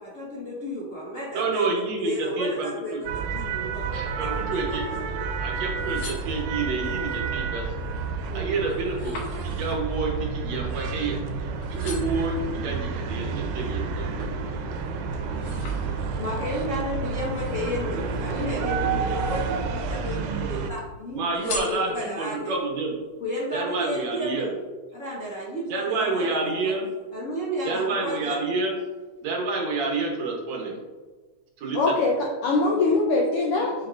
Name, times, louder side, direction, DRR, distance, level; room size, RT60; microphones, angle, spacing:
voice 1, 0.0-5.4 8.3-8.6 11.7-12.0 16.2-22.6 23.2-24.6 24.9-26.7 27.1-28.4 32.6-33.0, equal, 40° left, -8 dB, 1.2 m, -33 dB
voice 2, 1.3-3.0 3.9-4.8 5.4-7.7 8.3-11.2 11.8-14.3 21.1-22.9 23.5-24.5 25.7-26.9 27.7-28.8 29.2-30.8 31.6-32.0 33.5-33.7, right 3 dB, 70° right, -1 dB, 2.1 m, -29 dB
sound 1, 3.0-20.7, right 4 dB, 85° right, 2.1 m, -30 dB
sound 2, 5.7-6.9 7.4-7.9 8.2-11.3 11.6-12.3 12.9-14.4 14.8-16.4 17.3-18.4 19.0-19.8 20.1-20.8 21.3-22.4 22.9-23.0, left 3 dB, 65° left, 2.1 m, -41 dB
voice 3, 31.7-33.9, left 3 dB, 85° left, -1 dB, 1.2 m, -23 dB
8.5 x 5.1 x 2.5 m, 1.3 s
omnidirectional pair, 3.4 m